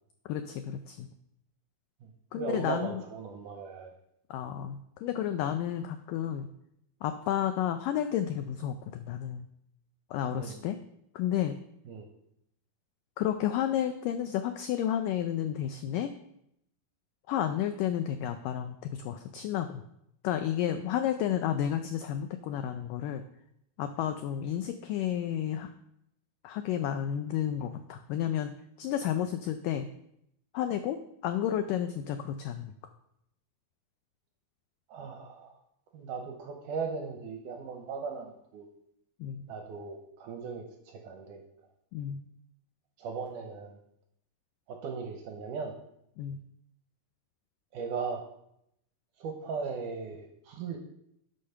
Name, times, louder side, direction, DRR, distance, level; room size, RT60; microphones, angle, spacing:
voice 1, 0.3-1.1 2.3-3.0 4.3-6.5 7.0-9.5 10.1-10.8 11.2-11.6 13.2-16.1 17.3-19.8 20.2-23.2 23.8-25.7 26.4-29.9 30.5-32.7 39.2-39.5 41.9-42.3 46.2-46.4, left 10 dB, 90° left, 8 dB, 1.9 m, -31 dB
voice 2, 2.3-3.9 10.3-10.6 11.9-12.1 34.9-35.5 35.9-38.7 39.5-41.4 43.0-43.7 44.7-45.7 47.7-48.2 49.2-50.8, right 5 dB, 75° right, 3 dB, 2.0 m, -37 dB
12.0 x 5.3 x 5.7 m, 0.77 s
omnidirectional pair, 4.5 m